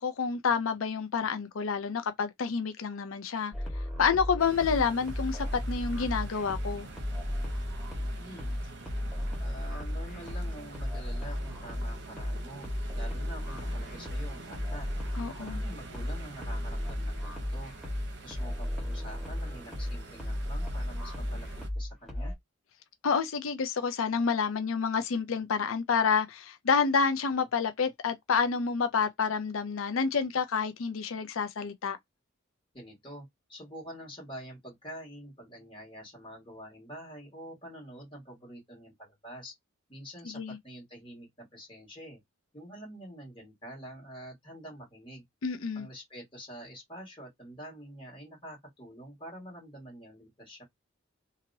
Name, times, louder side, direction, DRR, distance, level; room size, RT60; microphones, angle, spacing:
voice 1, 0.0-3.5 4.0-6.9 15.2-15.6 23.0-32.0 40.4-40.6 45.4-45.9, left 5 dB, 90° left, 0.5 m, -29 dB
sound 1, 3.5-22.3, left 1 dB, ahead, 1.4 m, -35 dB
sound 2, 4.4-21.7, right 3 dB, 55° right, 0.8 m, -46 dB
voice 2, 8.2-8.5 9.4-12.7 12.9-14.9 15.4-17.7 18.2-21.5 21.7-22.3 32.7-39.5 39.9-42.2 42.5-45.2 45.7-50.6, equal, 25° left, 1.7 m, -46 dB
2.9 x 2.7 x 2.6 m
head